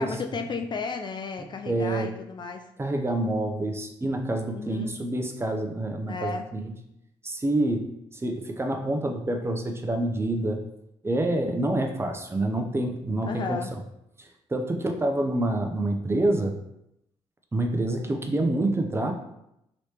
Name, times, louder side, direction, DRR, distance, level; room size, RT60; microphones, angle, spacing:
voice 1, 0.0-2.7 4.5-5.0 6.1-6.5 13.3-13.7, left 4 dB, 40° left, 5 dB, 0.3 m, -33 dB
voice 2, 1.7-2.1 2.8-6.6 7.2-7.9 8.1-10.6 11.0-13.6 14.2-16.5 17.5-19.1, right 1 dB, 20° right, 3 dB, 0.6 m, -27 dB
3.1 x 3.0 x 2.9 m, 0.81 s
supercardioid pair, 60°, 12 cm